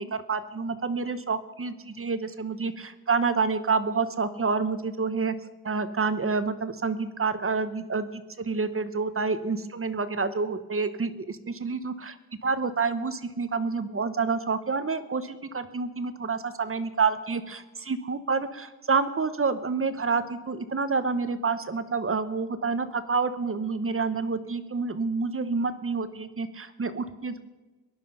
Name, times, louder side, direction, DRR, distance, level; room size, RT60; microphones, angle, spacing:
voice 1, 0.0-5.3 5.6-12.2 12.4-27.4, right 4 dB, 40° right, 12 dB, 1.0 m, -28 dB
18.0 x 11.0 x 5.5 m, 1.2 s
cardioid pair, 75°, 35 cm